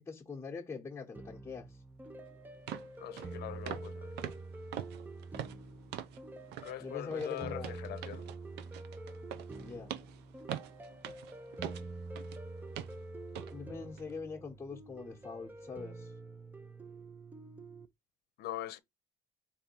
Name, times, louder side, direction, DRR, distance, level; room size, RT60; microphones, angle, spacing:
voice 1, 0.0-1.8 6.8-7.8 9.6-9.9 13.5-16.1, left 5 dB, 15° left, 1.0 m, -43 dB
sound 1, 1.1-17.9, right 2 dB, 10° right, 0.5 m, -47 dB
sound 2, 2.0-2.1 2.7-2.9 3.2-3.4 3.7-3.9 4.2-6.2 6.5-6.8 7.1-12.4 12.8-13.0 13.3-13.5 14.0-14.1, right 10 dB, 80° right, 0.6 m, -43 dB
voice 2, 3.0-4.3 6.6-8.2 18.4-18.8, left 12 dB, 70° left, 0.7 m, -42 dB
3.6 x 2.7 x 4.3 m
cardioid pair, 110°, 17 cm